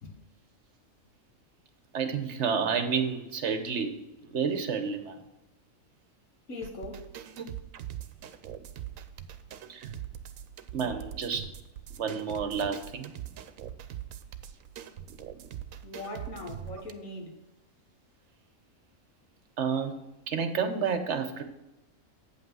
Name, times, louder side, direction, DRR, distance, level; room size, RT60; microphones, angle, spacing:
voice 1, 1.9-4.0 4.2-5.2 7.4-7.5 9.7-9.9 10.7-11.5 12.0-13.1 19.6-20.0 20.3-21.4, right 6 dB, 60° right, 1.1 m, -30 dB
voice 2, 6.5-7.1 15.8-17.4, left 2 dB, 75° left, 1.8 m, -40 dB
sound 1, 6.6-16.9, right 10 dB, 80° right, 1.0 m, -42 dB
8.4 x 5.7 x 6.1 m
omnidirectional pair, 1.4 m